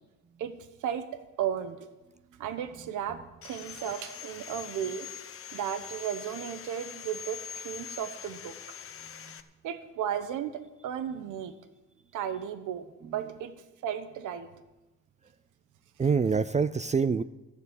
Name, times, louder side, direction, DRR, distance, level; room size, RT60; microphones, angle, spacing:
voice 1, 0.8-1.9 2.4-5.1 5.5-8.6 9.6-11.5 12.1-13.5 13.8-14.5, right 9 dB, 85° right, 10 dB, 1.1 m, -34 dB
Sawing, 3.4-9.4, left 8 dB, 45° left, 1.0 m, -43 dB
voice 2, 9.0-9.4 13.0-13.2 16.0-17.2, right 5 dB, 25° right, 14 dB, 0.4 m, -27 dB
13.5 x 6.9 x 8.3 m, 1.1 s
cardioid pair, 90°, 30 cm